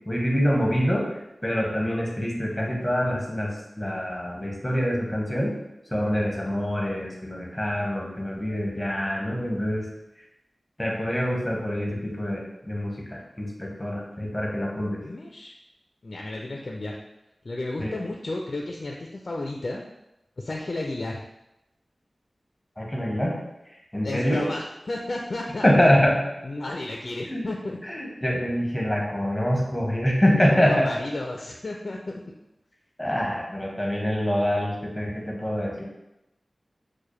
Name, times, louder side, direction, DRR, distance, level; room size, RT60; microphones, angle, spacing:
voice 1, 0.1-5.5 5.9-9.9 10.8-15.0 17.8-18.0 22.8-23.4 23.9-24.5 25.6-26.2 27.3-27.5 27.8-30.9 33.0-35.8, equal, 10° left, -2 dB, 1.0 m, -25 dB
voice 2, 15.0-15.5 16.0-17.0 17.4-19.8 20.4-21.2 24.0-25.9 26.4-27.8 30.3-32.2, left 2 dB, 60° left, 0 dB, 0.3 m, -33 dB
4.6 x 2.1 x 3.1 m, 0.91 s
wide cardioid pair, 65°, 0 cm